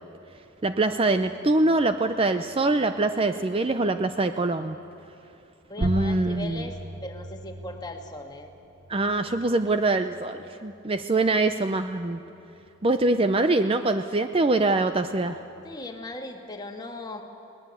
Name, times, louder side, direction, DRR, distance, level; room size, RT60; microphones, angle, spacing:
voice 1, 0.6-4.8 5.8-6.6 8.9-12.2 12.8-15.4, right 2 dB, 25° right, 9 dB, 0.5 m, -24 dB
voice 2, 5.7-8.5 15.6-17.2, left 2 dB, 20° left, 3 dB, 1.7 m, -38 dB
sound 1, 5.8-10.9, right 1 dB, 65° right, 0.8 m, -37 dB
21.5 x 19.0 x 8.4 m, 2.8 s
head